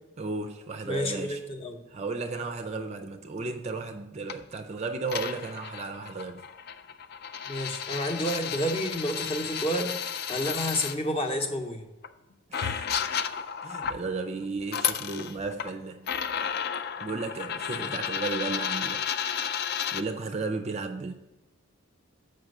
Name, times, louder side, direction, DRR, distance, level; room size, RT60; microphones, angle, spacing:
voice 1, 0.2-1.4 1.9-6.4 12.5-12.9 13.6-16.1 17.0-19.1 19.9-21.1, right 3 dB, 30° right, 0.4 m, -34 dB
voice 2, 0.9-1.8 7.5-9.9 10.3-11.9 17.8-17.9, equal, 25° left, 0.8 m, -30 dB
sound 1, 4.3-4.4 5.1-11.0 12.0-12.1 12.5-14.0 14.6-15.7 16.1-20.0, left 8 dB, 45° left, 0.3 m, -32 dB
7.2 x 5.3 x 6.5 m
head